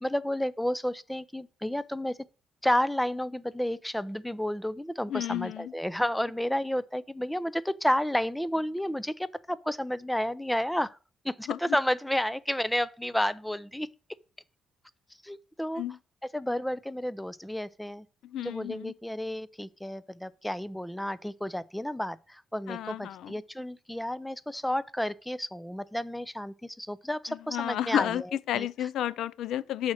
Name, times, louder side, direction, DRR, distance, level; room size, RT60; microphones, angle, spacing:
voice 1, 0.0-2.2 2.6-11.0 11.2-13.9 15.2-15.8 16.3-18.1 18.4-28.2 28.5-28.7, left 1 dB, 5° left, 0.4 m, -31 dB
voice 2, 5.1-5.7 11.5-11.8 15.8-16.0 18.2-18.9 22.7-23.3 27.3-29.9, left 11 dB, 80° left, 0.3 m, -32 dB
6.1 x 4.2 x 6.3 m
cardioid pair, 90°, 0 cm